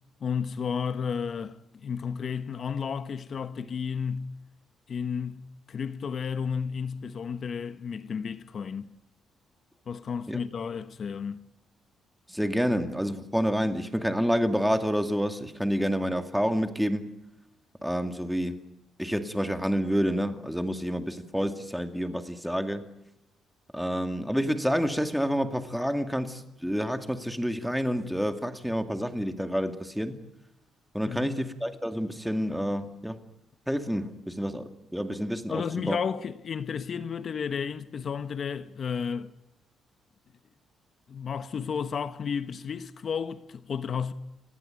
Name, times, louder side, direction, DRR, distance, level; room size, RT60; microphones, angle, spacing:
voice 1, 0.2-4.3 4.9-8.9 9.9-11.4 31.1-31.4 35.5-39.3 41.1-44.1, left 6 dB, 50° left, 1.3 m, -32 dB
voice 2, 12.3-17.1 17.8-18.6 19.0-22.8 23.7-30.2 30.9-33.2 33.7-36.0, equal, ahead, 2.4 m, -28 dB
29.5 x 18.5 x 9.2 m
cardioid pair, 90°, 0 cm